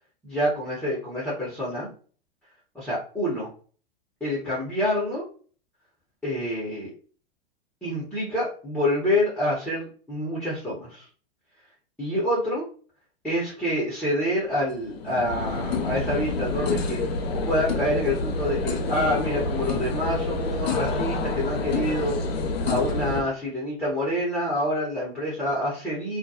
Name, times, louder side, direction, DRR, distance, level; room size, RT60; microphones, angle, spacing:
voice 1, 0.2-1.9 2.7-3.5 4.2-5.3 6.2-6.9 7.8-11.1 12.0-12.7 13.2-17.2 17.5-22.2 22.6-26.2, left 1 dB, 5° left, -6 dB, 0.8 m, -27 dB
sound 1, 14.5-23.2, left 3 dB, 80° left, 0.5 m, -28 dB
2.2 x 2.2 x 2.7 m, 0.42 s
hypercardioid pair, 110°, 30 cm